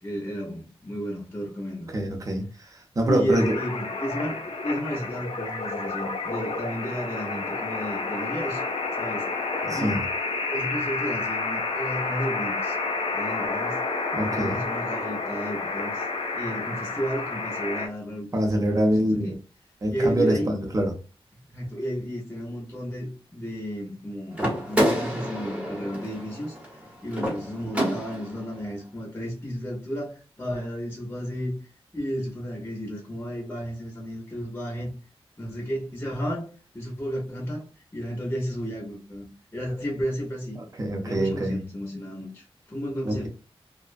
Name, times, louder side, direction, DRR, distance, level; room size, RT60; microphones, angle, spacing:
voice 1, 0.0-1.9 3.1-8.6 9.0-9.3 9.7-10.0 10.5-12.8 13.1-13.8 14.2-16.1 16.3-18.9 19.2-19.3 19.9-20.6 21.5-26.6 27.0-31.5 31.9-34.9 35.4-36.5 36.7-40.6 41.0-43.3, equal, 20° left, 0.7 m, -32 dB
voice 2, 1.9-2.4 2.7-3.5 9.6-10.0 14.1-14.6 18.3-19.3 19.8-20.9 40.5-41.6 43.0-43.3, right 1 dB, 35° right, 0.6 m, -25 dB
sound 1, 3.3-17.9, left 3 dB, 70° left, 0.6 m, -30 dB
sound 2, 24.3-28.4, equal, 10° right, 0.9 m, -28 dB
2.4 x 2.1 x 2.4 m
wide cardioid pair, 120°, 10 cm